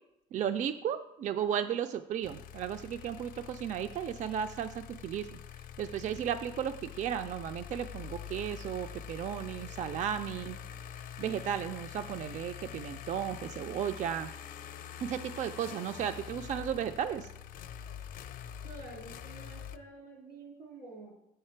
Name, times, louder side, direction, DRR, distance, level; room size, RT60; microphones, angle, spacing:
voice 1, 0.3-5.4 5.8-10.6 11.2-14.3 15.0-17.3, right 9 dB, 45° right, 9 dB, 0.4 m, -34 dB
sound 1, 2.2-19.8, left 9 dB, 55° left, 0.5 m, -45 dB
voice 2, 18.6-21.1, right 2 dB, 90° right, -1 dB, 2.8 m, -48 dB
7.2 x 6.6 x 4.4 m, 0.87 s
cardioid pair, 110°, 17 cm